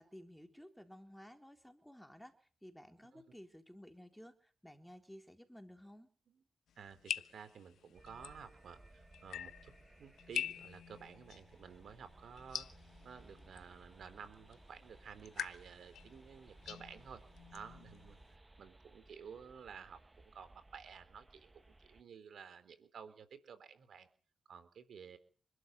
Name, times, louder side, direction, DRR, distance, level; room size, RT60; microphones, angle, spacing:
voice 1, 0.0-6.1, equal, 5° left, 6 dB, 3.7 m, -55 dB
sound 1, 6.7-18.3, left 9 dB, 85° left, 1.0 m, -47 dB
voice 2, 6.8-12.7 13.0-17.2 17.5-20.0 20.3-21.5 21.8-24.1 24.5-25.2, right 7 dB, 70° right, 12 dB, 3.9 m, -53 dB
sound 2, 7.9-22.0, right 2 dB, 20° right, 1.1 m, -61 dB
27.5 x 12.5 x 8.3 m, 0.42 s
cardioid pair, 75°, 0 cm